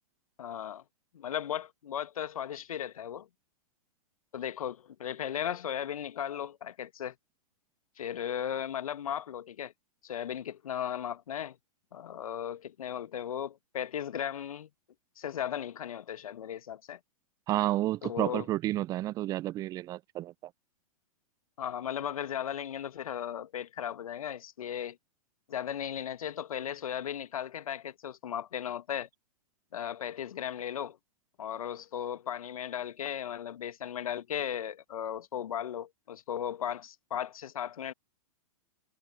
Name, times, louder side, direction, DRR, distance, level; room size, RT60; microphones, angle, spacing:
voice 1, 0.4-0.8 1.1-3.3 4.3-7.1 8.0-9.7 10.0-11.5 11.9-14.7 15.2-17.0 18.0-18.5 21.6-25.0 25.5-29.1 29.7-31.0 31.4-37.9, left 9 dB, 65° left, 1.5 m, -36 dB
voice 2, 17.5-20.3, right 15 dB, 20° right, 0.4 m, -30 dB
figure-of-eight pair, 110°, 20 cm